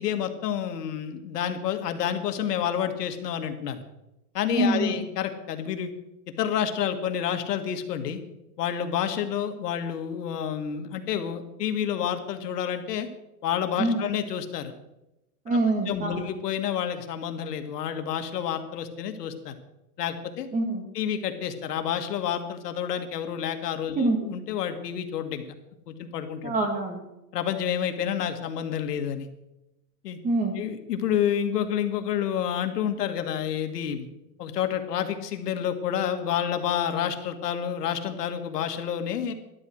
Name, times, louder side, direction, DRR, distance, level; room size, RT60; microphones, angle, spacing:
voice 1, 0.0-3.8 4.3-5.9 6.4-8.2 8.6-13.1 13.4-14.7 15.5-15.6 15.9-19.5 20.0-20.5 20.9-25.4 25.9-26.5 27.3-29.3 30.0-30.2 30.6-34.1 34.4-39.3, left 9 dB, 90° left, 7 dB, 1.9 m, -29 dB
voice 2, 4.5-4.9 13.8-14.1 15.5-16.3 20.5-20.9 24.0-24.2 26.4-27.0 30.2-30.5, right 2 dB, 15° right, 4 dB, 2.2 m, -25 dB
12.0 x 11.5 x 6.3 m, 0.93 s
supercardioid pair, 165°, 46 cm